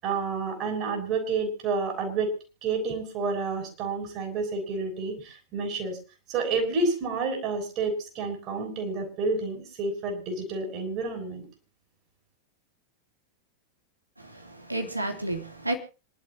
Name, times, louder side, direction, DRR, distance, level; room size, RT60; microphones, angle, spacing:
voice 1, 0.0-2.3 2.6-6.0 6.3-11.5, right 4 dB, 40° right, 3 dB, 6.8 m, -29 dB
voice 2, 14.2-15.7, right 1 dB, 85° right, 3 dB, 2.9 m, -31 dB
26.5 x 12.0 x 2.9 m, 0.32 s
figure-of-eight pair, 90°, 0 cm